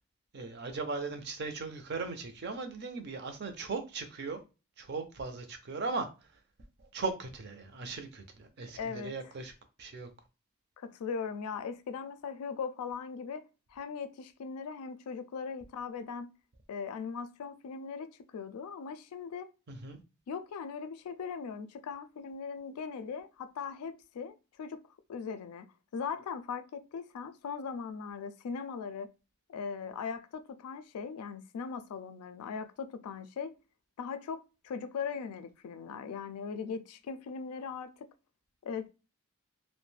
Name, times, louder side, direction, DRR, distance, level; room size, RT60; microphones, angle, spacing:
voice 1, 0.3-4.4 4.8-6.1 6.9-9.5 9.8-10.1 19.7-20.0, right 3 dB, 50° right, 0.5 m, -38 dB
voice 2, 8.8-9.1 10.8-13.4 13.7-16.3 16.7-19.5 20.3-24.8 25.1-25.7 25.9-29.1 29.5-33.5 34.0-38.1 38.6-38.9, left 6 dB, 85° left, 0.3 m, -39 dB
2.4 x 2.1 x 3.1 m
head